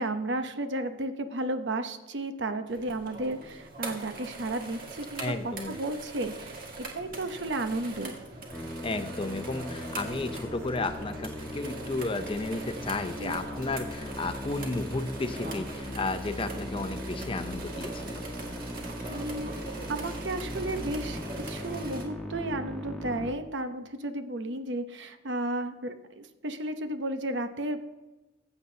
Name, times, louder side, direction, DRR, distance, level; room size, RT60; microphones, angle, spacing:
voice 1, 0.0-6.6 6.9-8.2 13.2-13.4 19.1-21.2 21.5-27.8, right 2 dB, 80° right, 8 dB, 0.9 m, -33 dB
sound 1, 2.7-22.0, right 2 dB, 55° right, 1.8 m, -42 dB
voice 2, 5.2-5.7 8.8-18.2, left 2 dB, 30° left, 9 dB, 0.6 m, -33 dB
Musical instrument, 8.5-23.3, equal, 5° left, 1.2 m, -39 dB
15.0 x 8.0 x 2.8 m, 1.1 s
head